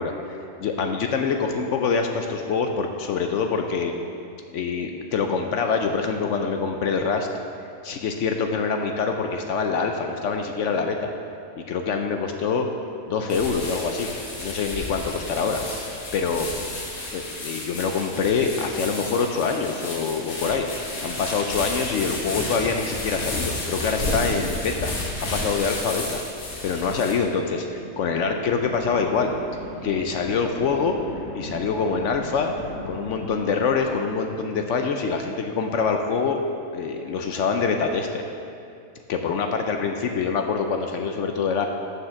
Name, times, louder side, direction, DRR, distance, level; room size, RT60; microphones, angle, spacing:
voice 1, 0.0-3.9 4.5-7.3 7.8-11.1 11.6-12.7 13.1-14.1 14.4-15.6 16.1-16.5 17.1-24.9 25.3-26.2 26.6-29.3 29.8-31.0 31.3-32.5 32.9-36.4 36.7-38.2 39.1-41.7, left 5 dB, 70° left, 4 dB, 0.9 m, -25 dB
sound 1, 13.3-27.1, left 2 dB, 85° left, 1.8 m, -32 dB
sound 2, 27.8-35.3, equal, 10° left, 1.6 m, -38 dB
7.2 x 6.5 x 6.2 m, 2.5 s
omnidirectional pair, 1.4 m